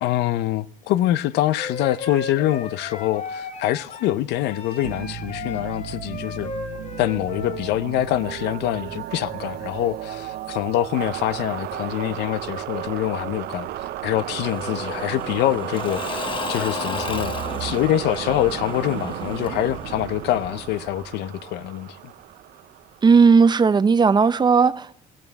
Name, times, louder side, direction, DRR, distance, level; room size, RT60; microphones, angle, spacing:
voice 1, 0.0-6.5 7.0-17.3 17.6-22.1, left 13 dB, 85° left, 0.6 m, -25 dB
Wind instrument woodwind instrument, 1.3-4.1 4.5-7.6, left 4 dB, 50° left, 6.4 m, -35 dB
sound 1, 4.8-23.3, right 13 dB, 70° right, 0.6 m, -33 dB
Engine / Mechanisms / Drill, 14.2-20.9, left 5 dB, 30° left, 1.1 m, -34 dB
voice 2, 23.0-25.0, right 5 dB, 25° right, 0.6 m, -16 dB
14.0 x 14.0 x 3.5 m
cardioid pair, 110°, 17 cm